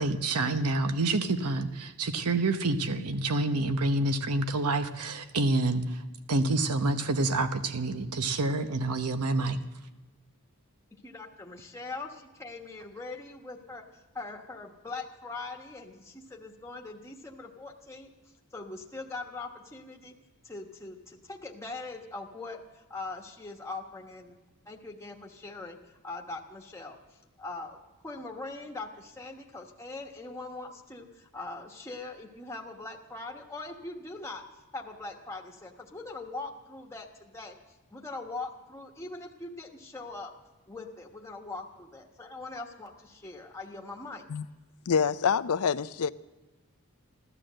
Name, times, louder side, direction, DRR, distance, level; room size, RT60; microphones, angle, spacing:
voice 1, 0.0-5.8 6.3-9.6, right 2 dB, 85° right, 9 dB, 0.9 m, -28 dB
voice 2, 10.9-18.1 18.5-20.1 20.4-24.4 24.6-27.0 27.4-27.8 28.0-34.4 34.7-37.6 37.9-40.3 40.7-44.2, left 3 dB, 10° left, 1 dB, 1.1 m, -41 dB
voice 3, 44.9-46.1, left 6 dB, 75° left, 15 dB, 0.5 m, -26 dB
15.0 x 12.5 x 7.7 m, 1.2 s
head